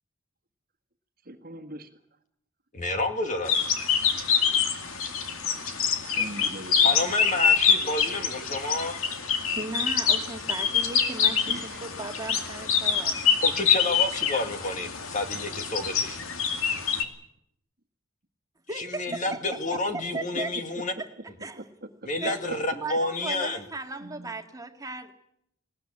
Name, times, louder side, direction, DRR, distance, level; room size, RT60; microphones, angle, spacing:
voice 1, 1.3-1.9 6.1-7.0 11.5-11.8 24.0-24.3, right 1 dB, 45° right, 6 dB, 1.6 m, -41 dB
voice 2, 2.7-3.7 6.8-9.0 13.4-16.2 18.7-20.9 22.0-23.6, left 2 dB, 35° left, 6 dB, 2.0 m, -29 dB
sound 1, 3.5-17.0, left 7 dB, 80° left, 2.2 m, -25 dB
voice 3, 9.6-13.2 18.7-19.8 20.1-20.5 21.0-21.1 21.4-21.7 22.2-22.4 22.7-25.1, right 3 dB, 15° right, 4 dB, 1.8 m, -37 dB
19.5 x 18.5 x 8.7 m, 0.76 s
head